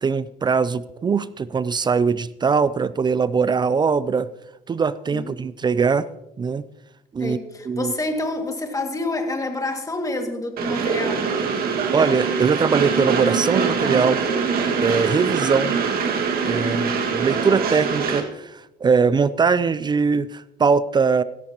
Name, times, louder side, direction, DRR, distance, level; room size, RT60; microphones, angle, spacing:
voice 1, 0.0-4.3 4.7-6.1 6.4-6.7 7.1-7.4 7.7-7.9 11.6-14.2 14.8-15.8 16.5-16.9 17.1-21.2, right 5 dB, 25° right, 17 dB, 0.4 m, -21 dB
voice 2, 7.2-11.2 16.6-17.1, left 2 dB, 20° left, 4 dB, 2.1 m, -28 dB
Train, 10.6-18.2, right 5 dB, 60° right, 1.9 m, -23 dB
16.0 x 13.5 x 2.9 m, 0.92 s
cardioid pair, 110°, 17 cm